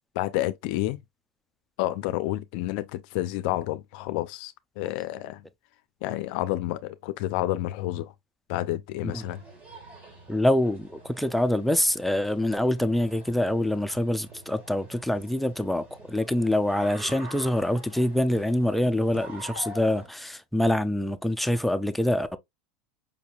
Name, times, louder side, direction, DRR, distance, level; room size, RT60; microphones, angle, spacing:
voice 1, 0.2-1.0 1.8-5.4 6.0-8.1 8.5-9.4, left 15 dB, 65° left, 0.4 m, -29 dB
sound 1, 9.1-20.1, right 1 dB, 30° right, 1.9 m, -46 dB
voice 2, 10.3-22.4, left 1 dB, ahead, 0.4 m, -25 dB
5.1 x 2.7 x 2.3 m
supercardioid pair, 115°, 5 cm